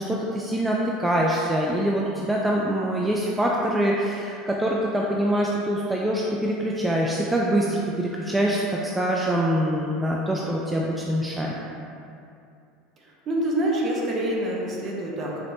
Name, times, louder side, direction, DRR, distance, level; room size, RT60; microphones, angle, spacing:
voice 1, 0.0-11.5, right 1 dB, 10° right, -3 dB, 0.3 m, -24 dB
voice 2, 13.0-15.5, right 1 dB, 35° right, -2 dB, 0.8 m, -27 dB
5.1 x 3.0 x 2.6 m, 2.5 s
supercardioid pair, 125°, 0 cm